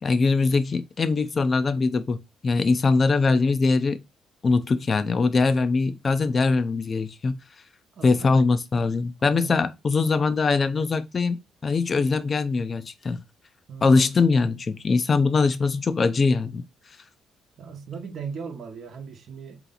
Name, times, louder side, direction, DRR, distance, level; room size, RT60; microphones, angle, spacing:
voice 1, 0.0-4.0 4.4-7.4 8.0-13.2 13.8-16.6, left 4 dB, 40° left, 0.6 m, -22 dB
voice 2, 7.9-8.4 9.2-9.6 13.7-14.0 17.6-19.6, right 6 dB, 60° right, 0.9 m, -38 dB
3.9 x 2.9 x 4.0 m
cardioid pair, 90°, 0 cm